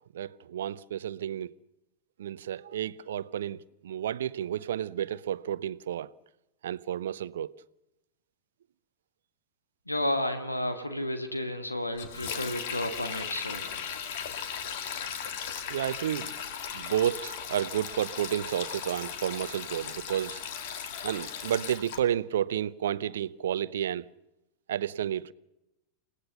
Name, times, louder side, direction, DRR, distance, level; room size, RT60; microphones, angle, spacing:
voice 1, 0.1-1.5 2.2-3.6 3.8-6.1 6.6-7.5 15.7-16.3 16.7-20.4 21.0-24.1 24.7-25.3, right 10 dB, 60° right, 0.7 m, -31 dB
voice 2, 9.9-13.7 14.3-14.4, left 1 dB, 85° left, 2.0 m, -32 dB
Sink (filling or washing), 12.0-22.0, left 7 dB, 50° left, 2.4 m, -37 dB
29.5 x 18.0 x 6.8 m
figure-of-eight pair, 90°, 0 cm